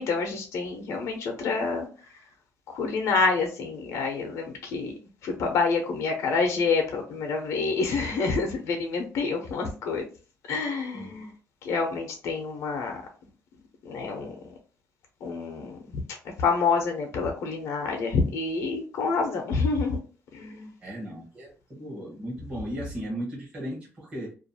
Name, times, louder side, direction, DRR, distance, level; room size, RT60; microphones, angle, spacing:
voice 1, 0.0-1.9 2.7-10.1 10.5-11.3 11.6-13.0 13.8-14.5 15.2-16.0 16.4-20.0 20.3-20.7, left 4 dB, 70° left, 3 dB, 0.6 m, -27 dB
voice 2, 20.8-24.3, equal, 20° right, -5 dB, 0.8 m, -36 dB
2.4 x 2.2 x 2.6 m, 0.37 s
cardioid pair, 175°, 5 cm